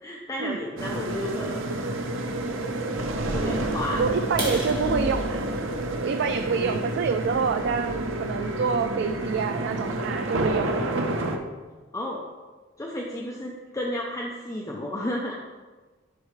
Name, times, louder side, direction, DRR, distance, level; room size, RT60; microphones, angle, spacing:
voice 1, 0.0-1.8 2.7-3.0 3.3-4.0 6.5-6.9 11.9-12.2 12.8-15.4, left 1 dB, 15° left, -2 dB, 0.6 m, -32 dB
sound 1, 0.8-11.4, right 2 dB, 85° right, 0.8 m, -29 dB
voice 2, 3.4-5.5 6.0-10.8, right 5 dB, 60° right, 7 dB, 0.3 m, -27 dB
sound 2, 4.3-8.0 8.6-8.8 9.2-9.3 9.7-9.9 10.2-10.3 10.8-10.9 11.1-11.6, right 1 dB, 25° right, 1.8 m, -37 dB
10.5 x 4.5 x 3.2 m, 1.4 s
head